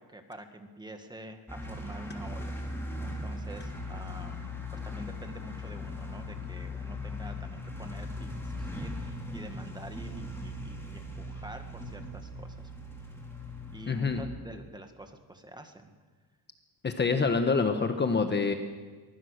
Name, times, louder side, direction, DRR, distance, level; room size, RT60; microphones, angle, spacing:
voice 1, 0.0-2.5 3.0-4.6 4.8-12.7 13.7-15.9, right 1 dB, 10° right, 6 dB, 1.8 m, -46 dB
sound 1, 1.5-14.2, left 1 dB, 5° left, 3.8 m, -39 dB
voice 2, 13.9-14.2 16.8-18.5, left 4 dB, 25° left, 6 dB, 1.3 m, -26 dB
23.5 x 20.0 x 6.7 m, 1.4 s
cardioid pair, 145°, 42 cm